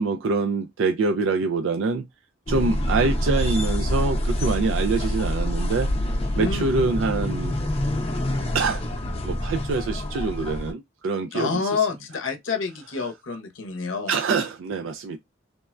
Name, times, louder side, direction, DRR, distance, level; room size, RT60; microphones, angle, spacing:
voice 1, 0.0-2.1 2.5-6.1 6.4-7.5 8.5-8.9 9.2-11.9 13.0-13.1 14.1-15.2, right 4 dB, 80° right, 0.3 m, -25 dB
sound 1, 2.5-10.7, left 1 dB, 30° left, 0.6 m, -26 dB
voice 2, 6.4-6.7 11.3-14.1, left 5 dB, 85° left, 0.7 m, -28 dB
3.3 x 2.1 x 2.3 m
head